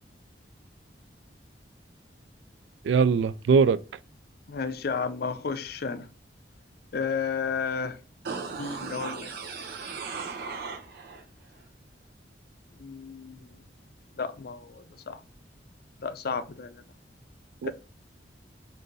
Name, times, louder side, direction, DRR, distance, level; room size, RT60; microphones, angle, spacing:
voice 1, 2.8-3.8 17.6-17.7, right 5 dB, 80° right, 0.3 m, -21 dB
voice 2, 4.5-6.1 6.9-8.0 8.5-9.3 12.8-13.6 14.1-15.2 16.0-16.8 17.6-17.7, left 5 dB, 60° left, 0.5 m, -32 dB
sound 1, 8.2-11.2 11.6-11.7, right 5 dB, 60° right, 0.7 m, -37 dB
3.9 x 2.6 x 3.9 m
head